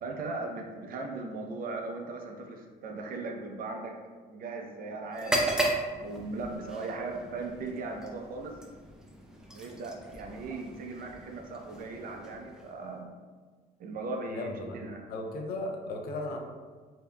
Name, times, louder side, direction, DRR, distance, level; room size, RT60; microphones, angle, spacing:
voice 1, 0.0-3.9 4.3-5.6 6.0-8.6 9.5-13.1 13.8-15.0, right 3 dB, 60° right, 2 dB, 0.6 m, -38 dB
sound 1, 5.1-12.9, right 1 dB, 5° right, 0.5 m, -36 dB
voice 2, 14.3-14.8 15.1-16.4, left 2 dB, 65° left, 2 dB, 0.6 m, -36 dB
5.2 x 2.8 x 2.2 m, 1.5 s
cardioid pair, 110°, 17 cm